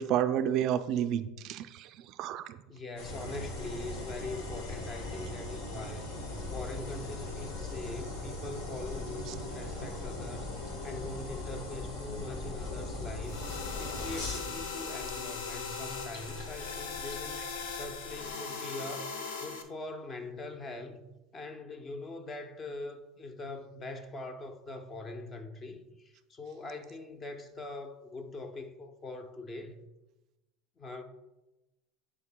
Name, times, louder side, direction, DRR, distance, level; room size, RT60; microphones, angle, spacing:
voice 1, 0.0-2.6, right 10 dB, 50° right, 0.3 m, -30 dB
voice 2, 2.7-6.1 6.5-19.1 19.4-21.0 21.3-29.8 30.8-31.0, left 2 dB, 25° left, 0.7 m, -42 dB
sound 1, 3.0-18.3, left 3 dB, 65° left, 1.5 m, -41 dB
sound 2, 3.1-14.6, right 3 dB, 10° right, 0.8 m, -47 dB
sound 3, 13.2-19.6, left 5 dB, 80° left, 0.7 m, -39 dB
9.7 x 4.8 x 2.2 m
supercardioid pair, 115°, 0 cm